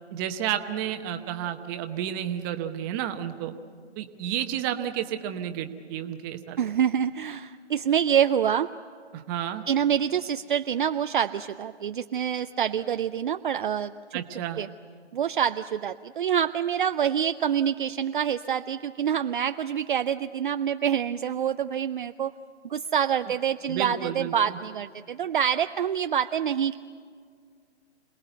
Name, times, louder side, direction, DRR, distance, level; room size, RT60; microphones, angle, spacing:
voice 1, 0.1-3.5 4.0-6.6 9.1-9.6 14.1-14.6 23.7-24.6, right 10 dB, 20° right, 7 dB, 0.9 m, -31 dB
voice 2, 6.6-8.7 9.7-14.2 14.6-14.7 15.1-22.3 22.6-26.8, right 8 dB, 50° right, 9 dB, 0.5 m, -26 dB
27.0 x 19.0 x 8.0 m, 2.1 s
hypercardioid pair, 145°, 34 cm